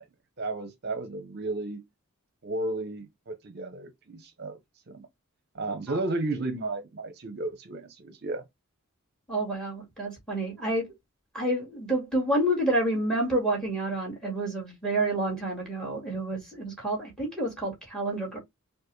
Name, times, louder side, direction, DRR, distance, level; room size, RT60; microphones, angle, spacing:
voice 1, 0.4-1.8 2.4-4.6 4.9-5.1 5.5-8.4, right 2 dB, 50° right, 0.6 m, -33 dB
voice 2, 9.3-10.9 11.3-18.4, right 1 dB, 5° left, 2.0 m, -29 dB
4.5 x 2.5 x 3.1 m
head